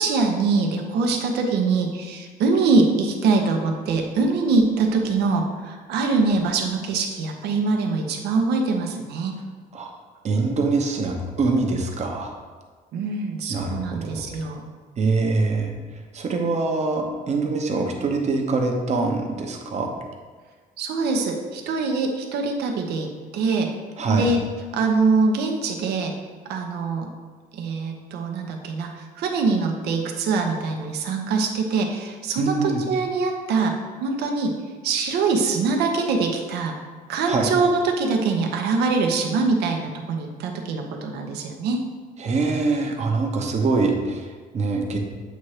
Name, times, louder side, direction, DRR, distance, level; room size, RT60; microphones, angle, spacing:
voice 1, 0.0-9.3 12.9-14.6 20.8-23.7 24.1-24.4 24.7-26.1 26.5-27.1 27.5-33.7 34.0-34.5 34.8-36.7 37.1-41.8, right 4 dB, 75° right, 2 dB, 1.0 m, -23 dB
voice 2, 10.2-12.3 13.5-14.2 15.0-15.7 16.1-19.9 24.0-24.3 32.4-32.8 37.3-37.5 42.2-45.0, right 3 dB, 40° right, 2 dB, 1.0 m, -24 dB
8.0 x 3.0 x 4.8 m, 1.5 s
cardioid pair, 110°, 17 cm